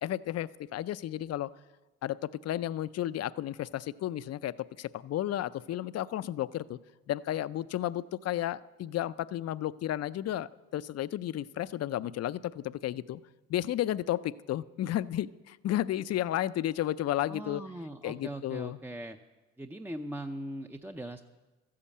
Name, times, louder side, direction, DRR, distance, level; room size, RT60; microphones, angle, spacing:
voice 1, 0.0-1.5 2.0-6.8 7.1-13.2 13.5-17.6 18.0-18.8, left 12 dB, 55° left, 16 dB, 0.5 m, -33 dB
voice 2, 17.3-19.2 19.6-21.2, right 1 dB, 5° right, 6 dB, 0.5 m, -40 dB
13.0 x 8.6 x 8.4 m, 1.2 s
cardioid pair, 90°, 30 cm